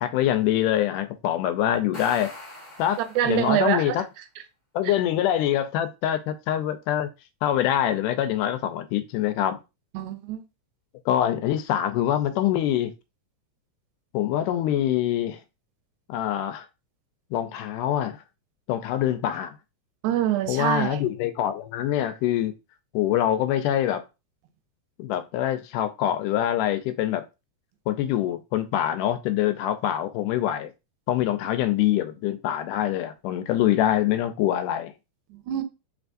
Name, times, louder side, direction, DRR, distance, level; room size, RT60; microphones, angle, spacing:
voice 1, 0.0-2.3 2.8-4.1 4.8-7.1 7.4-9.6 11.1-12.9 14.1-15.4 16.1-16.7 17.3-18.2 18.7-19.6 20.5-22.5 22.9-24.0 25.0-27.2 27.9-30.7 31.1-34.9, left 11 dB, 85° left, 2.1 m, -24 dB
sound 1, 1.7-3.7, left 1 dB, 40° left, 0.4 m, -42 dB
voice 2, 3.2-4.0 4.9-5.0 9.9-10.4 20.0-21.0 35.3-35.6, right 11 dB, 80° right, 2.0 m, -25 dB
4.4 x 3.4 x 2.5 m
omnidirectional pair, 3.6 m